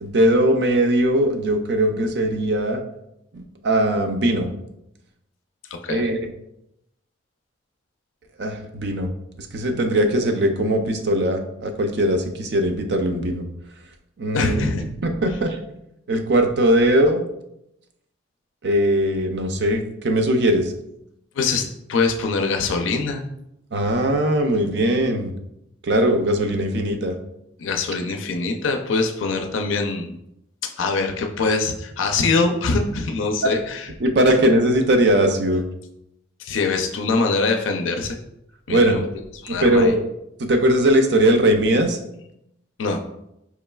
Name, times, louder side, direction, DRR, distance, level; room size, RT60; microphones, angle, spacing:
voice 1, 0.0-2.8 3.3-4.5 5.9-6.3 8.4-9.1 9.4-13.4 14.2-15.6 16.1-17.2 18.6-20.7 23.7-25.3 25.8-27.2 33.4-33.6 34.0-35.6 38.7-39.1 39.5-40.0 40.5-42.0, right 1 dB, 55° right, 6 dB, 0.5 m, -20 dB
voice 2, 14.3-14.8 21.4-23.2 27.6-30.1 30.8-33.9 36.4-38.2 38.7-39.0 39.4-39.9 42.8-43.0, left 3 dB, 80° left, 4 dB, 0.4 m, -23 dB
4.8 x 3.1 x 2.2 m, 0.82 s
head